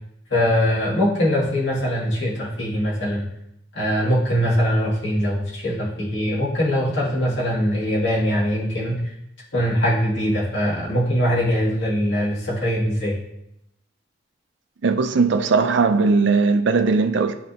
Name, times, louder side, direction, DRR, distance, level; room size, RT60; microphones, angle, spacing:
voice 1, 0.3-3.3 3.7-9.1 9.5-13.2, equal, 70° left, 2.5 m, -22 dB
voice 2, 14.8-17.3, right 4 dB, 65° right, 0.5 m, -18 dB
10.0 x 3.8 x 2.8 m
head